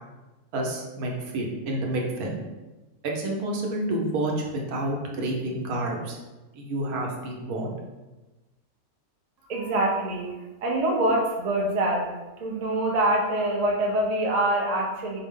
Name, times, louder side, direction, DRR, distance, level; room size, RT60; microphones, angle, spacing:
voice 1, 0.5-2.4 3.0-6.2 6.5-7.7, right 1 dB, 80° right, -1 dB, 1.2 m, -29 dB
voice 2, 9.5-12.1 12.4-15.2, right 1 dB, 55° right, -1 dB, 0.4 m, -25 dB
4.7 x 2.0 x 3.6 m, 1.1 s
omnidirectional pair, 1.6 m